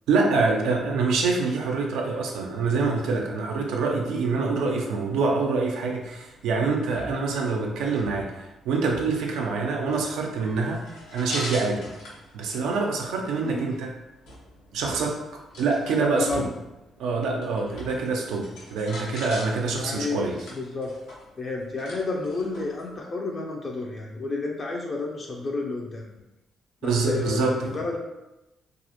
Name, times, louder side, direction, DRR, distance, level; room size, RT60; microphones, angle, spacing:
voice 1, 0.1-8.3 8.6-10.9 11.1-11.8 12.3-13.9 14.7-15.2 15.6-16.5 17.0-20.4 26.8-27.8, right 4 dB, 90° right, 0 dB, 0.4 m, -25 dB
sound 1, 5.9-23.0, left 1 dB, 85° left, 0.7 m, -44 dB
voice 2, 16.0-16.5 19.7-20.2 20.5-20.9 21.4-26.1 26.8-28.0, left 3 dB, 40° left, -1 dB, 0.4 m, -30 dB
2.4 x 2.0 x 2.8 m, 0.96 s
cardioid pair, 90°, 0 cm